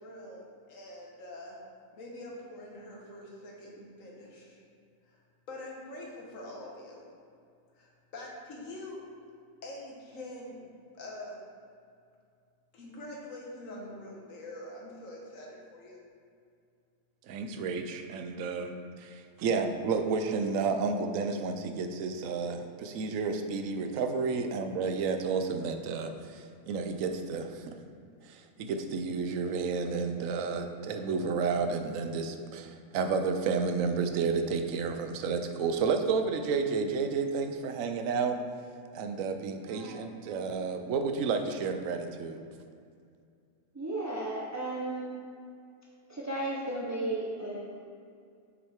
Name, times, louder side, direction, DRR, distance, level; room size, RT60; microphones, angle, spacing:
voice 1, 0.0-1.6 1.9-4.6 5.0-5.2 5.5-7.1 7.7-9.1 9.6-10.7 10.9-11.4 12.7-16.0, left 1 dB, 70° left, -2 dB, 1.6 m, -44 dB
voice 2, 17.3-27.7 28.2-38.4 38.9-42.4, right 5 dB, 75° right, 7 dB, 1.0 m, -31 dB
voice 3, 39.7-40.1 43.7-45.1 46.1-47.9, right 2 dB, 20° right, -5 dB, 0.4 m, -35 dB
7.3 x 6.3 x 3.5 m, 2.3 s
omnidirectional pair, 1.4 m